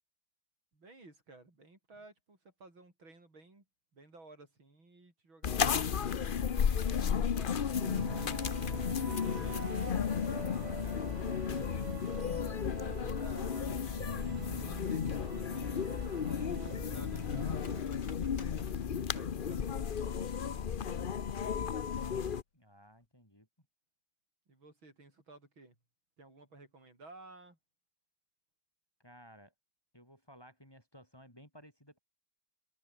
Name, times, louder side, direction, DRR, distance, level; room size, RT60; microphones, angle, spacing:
voice 1, 0.7-3.7 3.9-8.5 9.1-9.6 13.2-14.3 14.7-20.2 21.1-21.9 24.5-25.8 26.2-27.6, right 2 dB, 80° right, 7.5 m, -55 dB
sound 1, 5.4-22.4, left 7 dB, 85° left, 0.4 m, -34 dB
sound 2, 7.5-17.8, right 4 dB, 25° right, 1.0 m, -45 dB
voice 2, 8.7-10.0 10.4-11.9 22.5-23.7 29.0-29.5 29.9-32.0, equal, 10° left, 6.1 m, -57 dB
Cutlery silverware, 17.3-20.3 20.7-21.4 21.8-21.9 22.2-22.6 22.9-23.1, left 4 dB, 55° left, 3.5 m, -59 dB
omnidirectional pair, 2.2 m